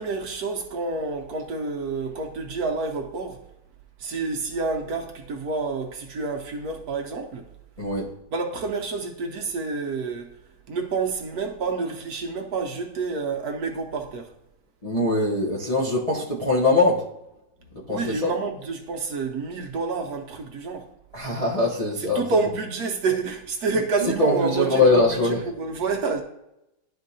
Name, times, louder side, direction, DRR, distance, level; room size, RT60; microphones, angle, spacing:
voice 1, 0.0-3.4 4.0-7.5 8.3-10.3 10.7-14.3 17.9-20.9 22.1-26.2, right 4 dB, 65° right, 1.2 m, -28 dB
voice 2, 7.8-8.1 14.8-17.0 17.9-18.3 21.1-22.2 24.0-25.4, left 2 dB, 30° left, 0.7 m, -22 dB
11.0 x 4.4 x 2.7 m
omnidirectional pair, 1.9 m